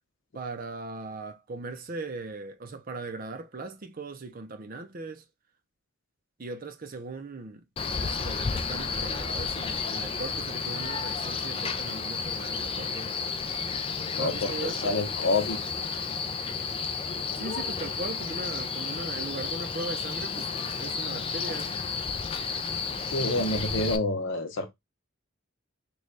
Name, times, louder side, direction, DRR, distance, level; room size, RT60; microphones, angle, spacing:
voice 1, 0.3-5.2 6.4-7.6 8.0-13.1 14.2-15.0 17.4-20.5 20.8-21.8, right 3 dB, 45° right, 0.5 m, -38 dB
Male speech man speaking, 7.8-24.0, left 5 dB, 25° left, 0.3 m, -32 dB
voice 2, 14.1-14.5 14.8-15.6 23.1-24.7, left 2 dB, 60° left, 0.8 m, -27 dB
3.2 x 2.3 x 3.8 m
head